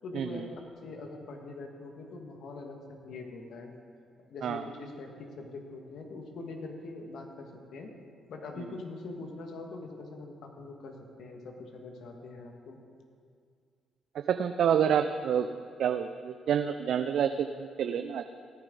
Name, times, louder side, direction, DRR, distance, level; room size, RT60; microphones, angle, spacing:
voice 1, 0.0-0.5 0.8-3.7 4.2-7.9 8.3-12.8, left 3 dB, 65° left, 3 dB, 1.7 m, -43 dB
voice 2, 14.1-15.5 15.8-18.3, right 8 dB, 65° right, 8 dB, 0.4 m, -28 dB
17.0 x 10.0 x 3.9 m, 2.2 s
hypercardioid pair, 50°, 0 cm